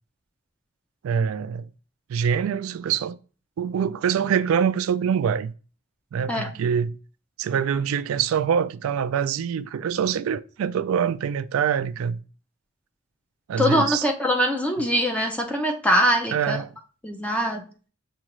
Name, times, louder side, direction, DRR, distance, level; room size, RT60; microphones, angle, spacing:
voice 1, 1.0-1.7 2.1-3.2 3.6-5.5 6.1-6.9 7.4-12.2 13.5-14.1 16.3-16.7, right 7 dB, 85° right, 0.3 m, -24 dB
voice 2, 13.6-16.6 17.0-17.6, equal, 5° left, 0.4 m, -22 dB
6.2 x 2.4 x 3.0 m
head